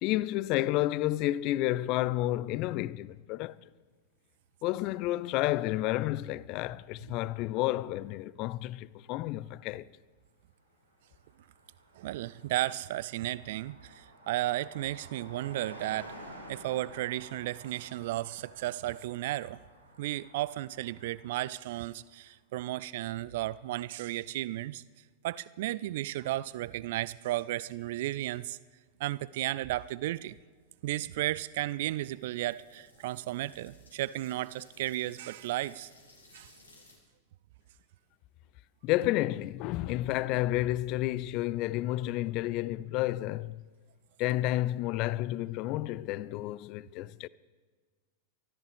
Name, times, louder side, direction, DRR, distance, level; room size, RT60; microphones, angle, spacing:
voice 1, 0.0-3.6 4.6-9.9 38.8-43.6 44.2-47.3, left 16 dB, 40° left, 0.4 m, -31 dB
Car passing by, 10.7-10.8 11.0-22.1, right 1 dB, 80° right, 4.6 m, -52 dB
voice 2, 12.0-16.1 16.5-19.6 20.0-24.8 25.2-28.6 29.0-30.4 30.8-35.9 36.3-36.5, right 15 dB, 55° right, 0.3 m, -34 dB
sound 1, 31.5-37.0, left 2 dB, 80° left, 3.3 m, -60 dB
24.0 x 13.5 x 3.5 m
figure-of-eight pair, 90°, 0 cm